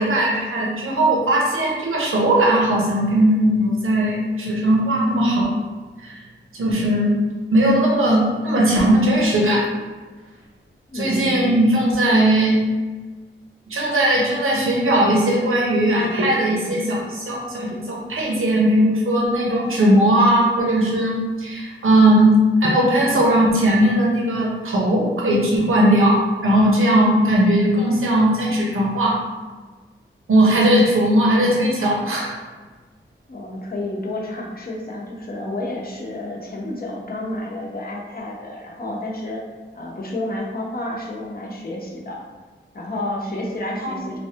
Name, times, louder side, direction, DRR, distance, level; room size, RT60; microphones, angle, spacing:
voice 1, 0.0-5.5 6.0-6.2 6.5-7.2 7.5-9.7 10.9-12.6 13.7-22.3 22.6-29.2 30.3-32.4 43.8-44.0, right 1 dB, 85° right, -3 dB, 0.6 m, -18 dB
voice 2, 10.9-11.4 30.5-30.6 33.3-39.4 39.7-42.2 42.7-44.2, left 1 dB, 45° left, -3 dB, 0.7 m, -30 dB
3.2 x 2.2 x 2.8 m, 1.3 s
wide cardioid pair, 55°, 21 cm